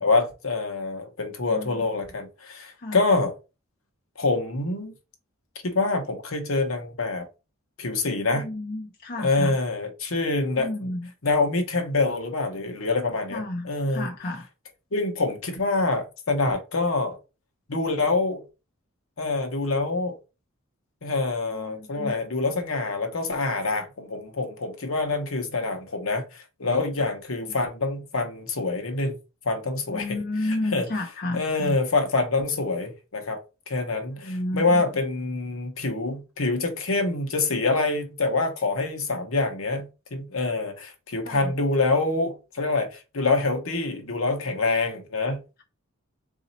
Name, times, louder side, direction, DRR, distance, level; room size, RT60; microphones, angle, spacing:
voice 1, 0.0-3.3 4.2-4.9 5.6-7.3 7.8-8.5 9.2-10.7 11.2-14.1 14.9-17.2 17.7-18.4 19.2-20.2 21.0-29.2 29.4-30.2 30.7-30.9 31.3-45.4, left 3 dB, 70° left, 1.0 m, -26 dB
voice 2, 1.5-1.9 2.8-3.0 8.3-9.6 10.5-11.1 13.3-14.5 21.5-22.1 27.5-27.6 29.9-31.8 34.2-34.9 41.2-41.5, left 1 dB, 40° left, 0.6 m, -32 dB
3.9 x 2.7 x 4.1 m
head